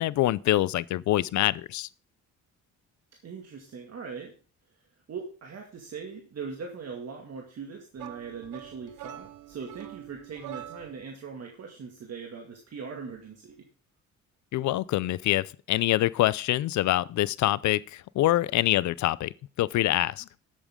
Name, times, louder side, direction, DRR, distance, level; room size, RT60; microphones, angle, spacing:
voice 1, 0.0-1.9 14.5-19.3 19.6-20.2, left 15 dB, 70° left, 0.5 m, -25 dB
voice 2, 3.2-4.3 5.1-13.7, right 5 dB, 55° right, 2.2 m, -40 dB
sound 1, 8.0-11.1, right 13 dB, 75° right, 1.0 m, -44 dB
12.5 x 8.7 x 3.7 m
cardioid pair, 90°, 30 cm